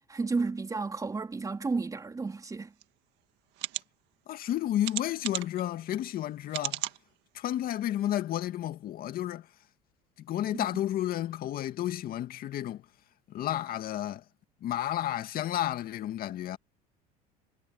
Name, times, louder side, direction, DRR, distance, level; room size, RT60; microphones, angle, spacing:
voice 1, 0.1-2.7 10.5-10.6, right 4 dB, 20° right, 3.3 m, -32 dB
sound 1, 2.8-2.9 3.5-3.8 4.8-5.6 6.5-7.0 7.5-7.6 8.0-8.1, right 17 dB, 65° right, 2.0 m, -34 dB
voice 2, 4.3-6.8 7.3-9.5 10.2-12.8 13.3-14.2 14.6-16.6, left 12 dB, 50° left, 2.2 m, -32 dB
supercardioid pair, 100°, 19 cm